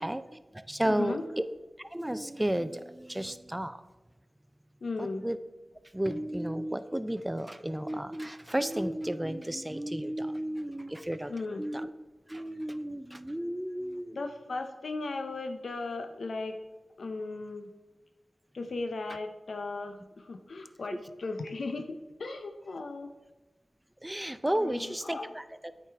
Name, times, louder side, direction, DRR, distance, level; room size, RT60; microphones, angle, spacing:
voice 1, 0.0-1.4 1.8-3.8 5.0-5.4 5.9-11.9 12.3-14.2 24.0-25.7, right 1 dB, 15° right, 12 dB, 0.4 m, -33 dB
voice 2, 0.8-1.2 4.8-5.2 11.3-11.6 14.1-16.6 17.0-17.7 18.5-23.1 24.5-25.3, left 3 dB, 85° left, 6 dB, 0.5 m, -37 dB
8.5 x 5.0 x 3.4 m, 1.2 s
wide cardioid pair, 60°, 0 cm